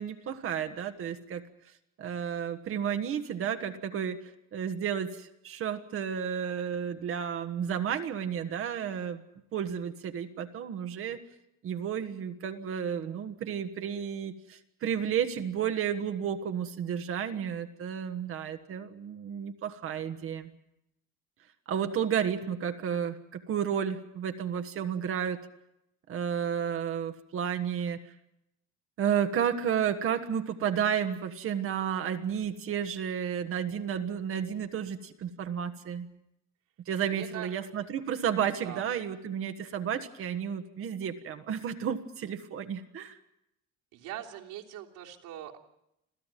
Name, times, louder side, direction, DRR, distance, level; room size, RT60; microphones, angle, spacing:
voice 1, 0.0-1.4 2.0-4.2 4.5-9.2 9.5-11.2 11.6-20.5 21.7-25.4 26.1-28.0 29.0-36.1 36.9-43.2, right 8 dB, 45° right, 7 dB, 1.4 m, -32 dB
voice 2, 37.1-37.6 38.6-38.8 43.9-45.6, right 12 dB, 75° right, 0 dB, 3.3 m, -42 dB
27.0 x 16.0 x 9.2 m, 0.83 s
cardioid pair, 175°, 31 cm